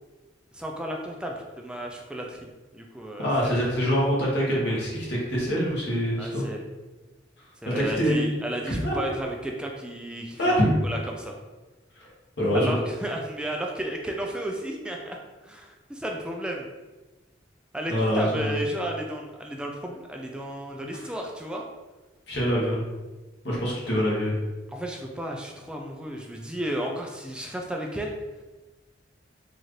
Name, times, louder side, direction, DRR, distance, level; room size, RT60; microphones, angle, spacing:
voice 1, 0.5-2.5 2.7-3.5 6.2-6.6 7.6-10.4 10.8-11.3 12.5-15.2 15.4-16.7 17.7-21.6 24.7-28.1, right 1 dB, 5° right, 1 dB, 0.3 m, -33 dB
voice 2, 3.2-6.4 7.6-8.2 8.6-9.0 10.4-10.7 12.4-12.8 17.9-18.5 22.3-22.8 23.4-24.4, equal, 65° left, -5 dB, 1.2 m, -24 dB
4.2 x 2.5 x 3.1 m, 1.2 s
head